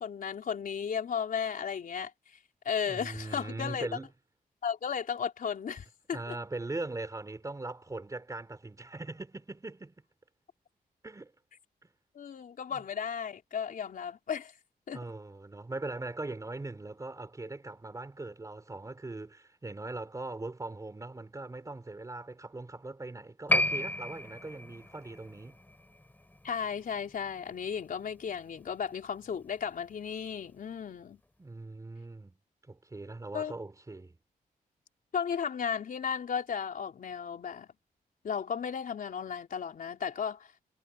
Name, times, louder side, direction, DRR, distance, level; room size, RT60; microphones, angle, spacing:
voice 1, 0.0-2.1 2.6-3.9 4.6-6.3 12.1-14.5 14.9-15.0 26.4-31.2 33.3-33.5 35.1-37.7 38.2-40.5, left 7 dB, 65° left, 3.9 m, -34 dB
voice 2, 2.8-4.1 6.1-9.9 11.0-11.3 11.8-11.9 12.7-12.8 14.9-25.6 31.4-32.3 32.7-34.2, right 2 dB, 20° right, 4.1 m, -40 dB
Piano, 23.5-30.5 30.7-30.8, left 1 dB, 10° left, 5.0 m, -35 dB
wide cardioid pair, 135°, 16 cm